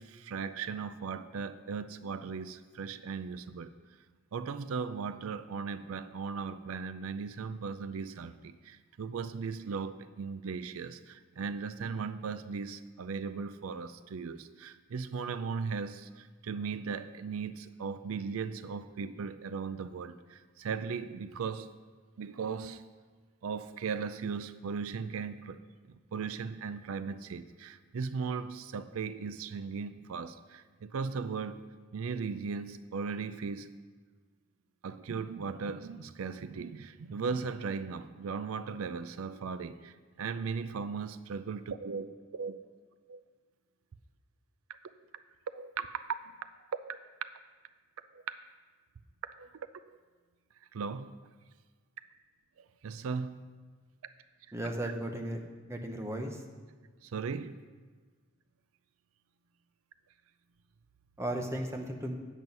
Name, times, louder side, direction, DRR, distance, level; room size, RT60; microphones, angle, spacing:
voice 1, 0.0-3.7 4.3-21.7 22.2-22.8 23.4-25.6 25.8-31.6 31.9-33.7 34.8-42.6 43.1-43.2 45.5-46.3 46.9-47.0 48.1-48.3 49.4-49.6 50.7-51.1 52.6-53.4 54.8-54.9 57.0-57.5, right 5 dB, 90° right, 12 dB, 0.4 m, -37 dB
voice 2, 54.5-56.4 61.2-62.1, right 1 dB, 15° right, 3 dB, 0.8 m, -35 dB
9.0 x 7.9 x 5.4 m, 1.5 s
head